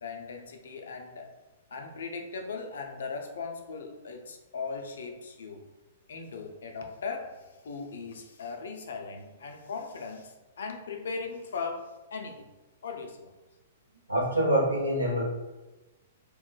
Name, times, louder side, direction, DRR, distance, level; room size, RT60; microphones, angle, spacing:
voice 1, 0.0-1.4 1.7-5.6 6.1-12.5 12.8-13.3, left 4 dB, 65° left, 3 dB, 0.4 m, -38 dB
voice 2, 14.1-15.2, right 1 dB, 90° right, -3 dB, 0.8 m, -25 dB
2.3 x 2.1 x 3.8 m, 1.1 s
figure-of-eight pair, 110°, 0 cm